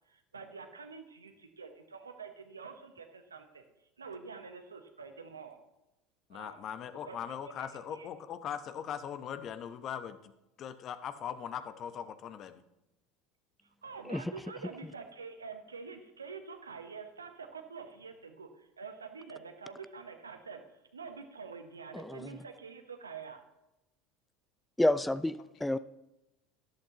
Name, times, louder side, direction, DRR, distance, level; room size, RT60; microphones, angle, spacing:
voice 1, 0.1-3.6 4.0-5.6 6.3-6.6 7.0-7.2 7.4-8.1 13.8-20.6 20.9-23.4, right 5 dB, 85° right, 6 dB, 1.1 m, -46 dB
voice 2, 6.3-10.3 10.6-12.6, left 8 dB, 45° left, 11 dB, 0.9 m, -40 dB
voice 3, 21.9-22.4 24.8-25.8, left 1 dB, 5° left, 16 dB, 0.4 m, -29 dB
13.0 x 11.5 x 3.0 m, 0.92 s
figure-of-eight pair, 75°, 0 cm